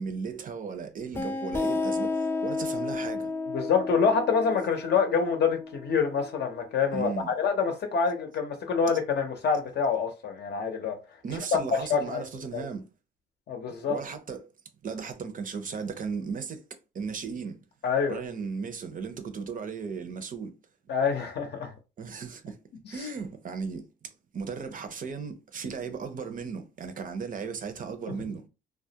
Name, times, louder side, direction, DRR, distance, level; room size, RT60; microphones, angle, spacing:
voice 1, 0.0-3.3 6.9-7.3 11.2-12.9 13.9-14.5 14.8-16.6 16.9-17.6 18.1-20.5 22.0-22.6 22.9-28.4, right 5 dB, 45° right, 0.5 m, -36 dB
sound 1, 1.1-6.5, left 3 dB, 10° left, 0.3 m, -32 dB
voice 2, 3.5-11.0 11.5-12.2 12.5-12.7 13.5-14.0 17.8-18.2 20.9-21.7 23.0-23.1, left 5 dB, 55° left, 0.6 m, -26 dB
2.3 x 2.0 x 2.7 m
cardioid pair, 90°, 20 cm